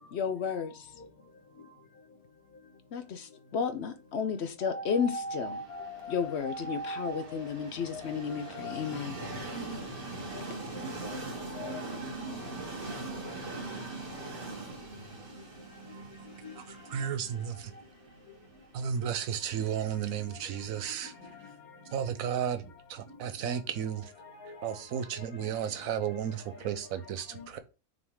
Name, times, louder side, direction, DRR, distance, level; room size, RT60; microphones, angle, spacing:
voice 1, 0.1-0.9 2.9-5.6 6.1-9.1, left 6 dB, 60° left, 0.8 m, -33 dB
voice 2, 4.6-7.2 7.9-9.8 10.4-11.2 11.5-11.8 12.6-13.0 16.4-16.5 16.9-17.1 19.6-20.0 21.0-21.1 24.4-24.5 25.4-25.6 27.3-27.4, equal, 85° left, 1.9 m, -41 dB
Train, 5.3-21.2, right 2 dB, 40° right, 1.4 m, -42 dB
voice 3, 16.9-17.7 18.7-21.1 21.9-24.1 24.4-27.6, right 8 dB, 70° right, 1.1 m, -33 dB
6.1 x 3.6 x 4.8 m
omnidirectional pair, 1.5 m